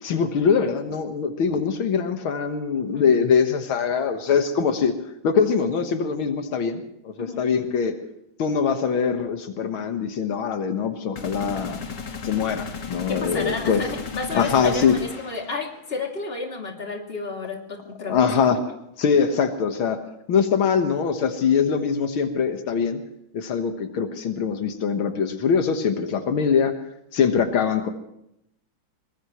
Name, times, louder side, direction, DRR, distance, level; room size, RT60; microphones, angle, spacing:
voice 1, 0.0-4.9 5.2-7.9 8.4-11.8 12.2-13.8 14.3-15.0 18.1-18.6 19.0-20.0 20.3-23.0 23.3-26.7 27.1-27.9, left 6 dB, 80° left, 7 dB, 2.2 m, -23 dB
sound 1, 11.2-15.9, left 6 dB, 60° left, 2.4 m, -35 dB
voice 2, 13.1-18.4, left 4 dB, 30° left, 2 dB, 2.9 m, -31 dB
23.0 x 20.0 x 3.1 m, 0.78 s
omnidirectional pair, 2.2 m